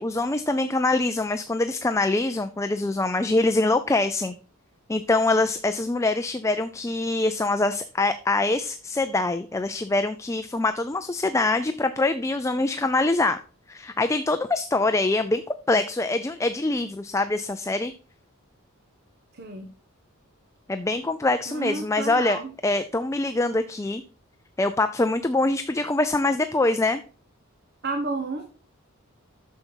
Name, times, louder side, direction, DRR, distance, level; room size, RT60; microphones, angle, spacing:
voice 1, 0.0-4.3 4.9-13.4 13.7-15.4 15.7-17.9 20.7-24.0 24.6-27.0, left 2 dB, 15° left, 9 dB, 0.4 m, -24 dB
voice 2, 19.4-19.7 21.5-22.5 27.8-28.5, right 3 dB, 50° right, 5 dB, 1.1 m, -31 dB
9.2 x 6.7 x 4.5 m, 0.39 s
head